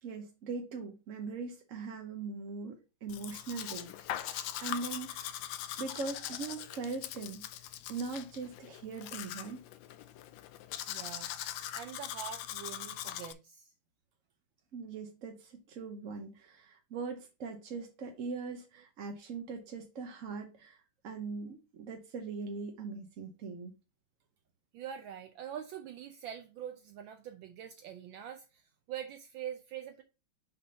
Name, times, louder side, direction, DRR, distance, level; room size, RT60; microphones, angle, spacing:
voice 1, 0.0-2.8 3.0-5.4 5.8-7.4 7.9-9.6 14.7-23.7, right 4 dB, 50° right, 1.0 m, -41 dB
Domestic sounds home sounds, 3.1-13.3, left 12 dB, 75° left, 1.2 m, -41 dB
voice 2, 10.9-11.3 11.7-13.7 24.7-30.0, right 9 dB, 75° right, 1.3 m, -44 dB
5.7 x 3.8 x 5.4 m
omnidirectional pair, 2.3 m